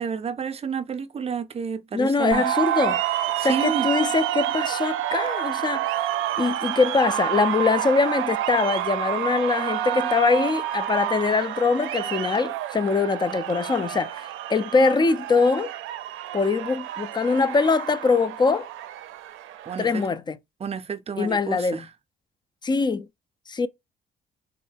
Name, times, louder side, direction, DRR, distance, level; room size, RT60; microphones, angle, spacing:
voice 1, 0.0-2.6 3.4-3.9 19.7-20.0 20.6-21.9, right 6 dB, 30° right, 0.5 m, -30 dB
voice 2, 1.9-3.0 3.4-5.8 6.4-15.7 16.3-18.7 19.8-20.4 21.2-21.8 22.6-23.1 23.5-23.7, left 4 dB, 20° left, 0.4 m, -23 dB
sound 1, 2.3-20.1, right 12 dB, 90° right, 0.5 m, -29 dB
3.5 x 2.1 x 3.2 m
cardioid pair, 90°, 20 cm